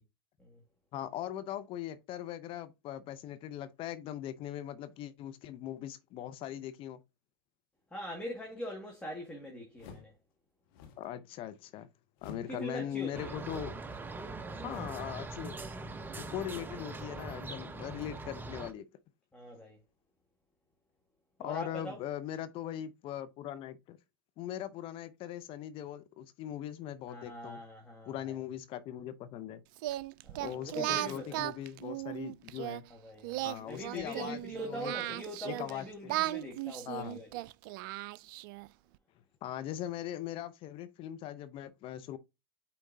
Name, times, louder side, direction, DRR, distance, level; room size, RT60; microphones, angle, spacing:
voice 1, 0.9-7.0 11.0-11.9 12.2-13.7 14.5-15.6 16.2-18.8 21.4-24.0 24.4-27.6 28.1-29.6 30.4-32.8 33.4-34.9 35.4-35.9 36.9-37.2 39.4-42.2, left 11 dB, 45° left, 0.7 m, -40 dB
voice 2, 7.9-10.1 12.5-13.3 19.3-19.8 21.4-22.0 27.1-28.4 30.2-31.5 32.9-37.3, equal, 10° left, 2.0 m, -43 dB
sound 1, 9.8-10.2 10.7-11.1 12.2-12.6 13.4-13.9 14.7-15.1, left 5 dB, 65° left, 1.6 m, -51 dB
sound 2, 13.1-18.7, right 3 dB, 15° right, 1.0 m, -42 dB
Singing, 29.8-32.8 33.2-35.7 36.1-38.7, right 16 dB, 60° right, 0.4 m, -36 dB
8.5 x 4.4 x 2.7 m
hypercardioid pair, 100°, 13 cm